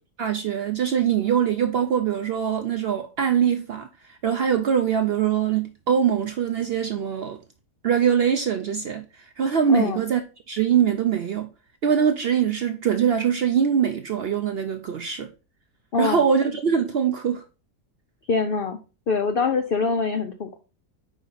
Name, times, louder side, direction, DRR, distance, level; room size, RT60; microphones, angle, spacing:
voice 1, 0.2-7.4 7.8-10.2 10.5-11.5 11.8-15.3 16.0-17.4, right 8 dB, 75° right, 0.5 m, -23 dB
voice 2, 9.7-10.0 15.9-16.2 18.3-18.8 19.1-20.6, left 4 dB, 75° left, 0.5 m, -24 dB
5.0 x 4.9 x 3.9 m
omnidirectional pair, 1.7 m